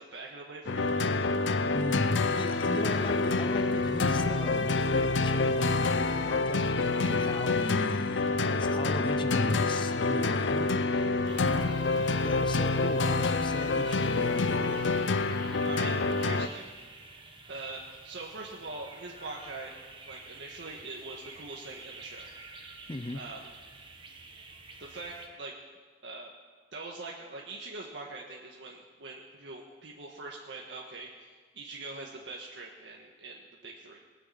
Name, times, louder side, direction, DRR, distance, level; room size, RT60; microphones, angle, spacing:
voice 1, 0.0-1.3 15.6-16.7 17.5-22.3 23.1-23.5 24.8-25.5 26.0-26.3 26.7-31.1 31.5-34.0, right 3 dB, 85° right, -2 dB, 1.6 m, -43 dB
sound 1, 0.7-16.5, left 3 dB, 90° left, 0.7 m, -27 dB
voice 2, 1.7-10.7 12.2-14.8 22.9-23.2, left 2 dB, 25° left, 9 dB, 0.5 m, -38 dB
sound 2, 11.3-25.3, right 3 dB, 30° right, 1.4 m, -49 dB
19.5 x 6.9 x 8.7 m, 1.5 s
head